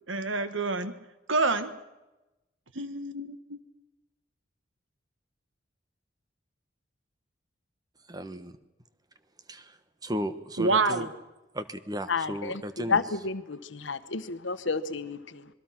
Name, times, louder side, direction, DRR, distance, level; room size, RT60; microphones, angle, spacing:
voice 1, 0.1-0.9 1.3-1.7 2.7-3.6 10.6-11.1, right 3 dB, 85° right, 10 dB, 1.7 m, -27 dB
voice 2, 8.1-8.5 9.5-9.7 10.0-11.1 11.5-13.0, equal, 20° right, 11 dB, 1.3 m, -35 dB
voice 3, 12.1-15.5, left 4 dB, 75° left, 11 dB, 1.2 m, -31 dB
26.5 x 22.0 x 6.1 m, 1.0 s
head